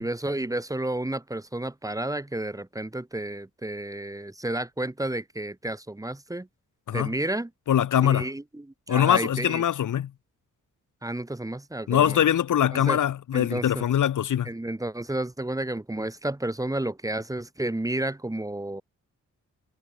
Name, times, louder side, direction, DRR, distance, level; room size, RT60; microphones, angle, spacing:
voice 1, 0.0-6.5 6.9-7.5 8.0-9.6 11.0-12.2 12.7-13.0 13.3-13.8 14.5-18.8, right 1 dB, 10° right, 1.8 m, -31 dB
voice 2, 7.7-8.3 8.9-10.1 11.9-14.5, left 10 dB, 80° left, 1.5 m, -22 dB
cardioid pair, 105°, 30 cm